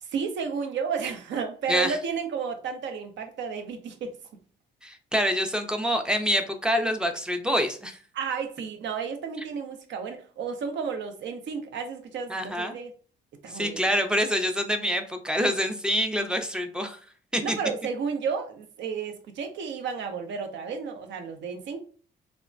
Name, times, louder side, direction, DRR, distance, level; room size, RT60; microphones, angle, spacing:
voice 1, 0.0-4.1 8.1-12.9 13.4-13.9 17.4-21.8, right 6 dB, 65° right, 6 dB, 0.6 m, -32 dB
voice 2, 4.8-8.0 12.3-12.8 13.5-17.0 17.3-17.6, equal, 5° right, 6 dB, 0.4 m, -26 dB
3.2 x 2.1 x 2.4 m, 0.42 s
cardioid pair, 90°, 20 cm